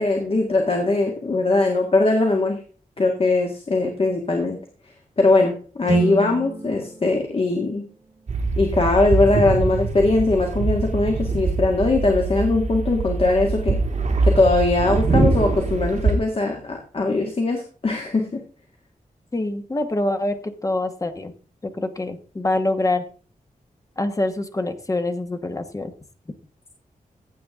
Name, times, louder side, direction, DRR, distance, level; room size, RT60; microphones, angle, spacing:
voice 1, 0.0-2.6 3.0-4.6 5.2-7.9 8.6-13.8 14.2-18.4, left 2 dB, 40° left, 3 dB, 1.8 m, -20 dB
sound 1, 5.9-9.9, right 4 dB, 25° right, 2.2 m, -30 dB
sound 2, 8.3-16.2, right 3 dB, 55° right, 2.7 m, -23 dB
voice 2, 19.3-21.3 21.6-23.0 24.0-25.9, left 2 dB, 25° left, 8 dB, 1.1 m, -25 dB
15.0 x 8.6 x 3.6 m, 0.40 s
wide cardioid pair, 155°, 14 cm